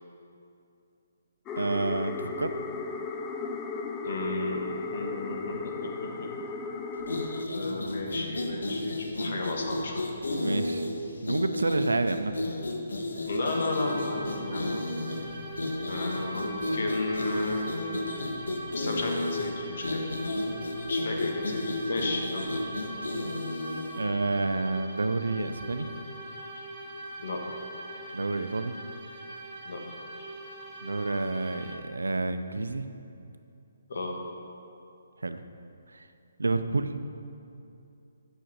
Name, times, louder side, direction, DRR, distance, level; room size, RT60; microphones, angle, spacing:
sound 1, 1.5-7.5, left 4 dB, 20° left, 0.5 m, -36 dB
voice 1, 1.6-2.5 10.4-10.9 11.2-12.4 23.0-23.4 24.0-25.9 28.1-28.8 30.8-32.9 35.2-35.5 35.9-36.1 36.4-36.9, right 3 dB, 90° right, 9 dB, 0.6 m, -29 dB
voice 2, 4.0-6.3 7.5-10.1 13.2-14.7 15.9-17.6 18.7-20.0 20.9-22.5 26.5-26.7 27.2-27.4 29.6-29.8 30.2-30.3 33.9-34.2, left 2 dB, 65° left, 1 dB, 1.5 m, -33 dB
sound 2, 7.0-24.1, left 2 dB, 85° left, 1.0 m, -33 dB
sound 3, 13.4-31.8, right 1 dB, 25° right, 1.5 m, -42 dB
7.8 x 6.4 x 6.5 m, 2.6 s
hypercardioid pair, 145°, 0 cm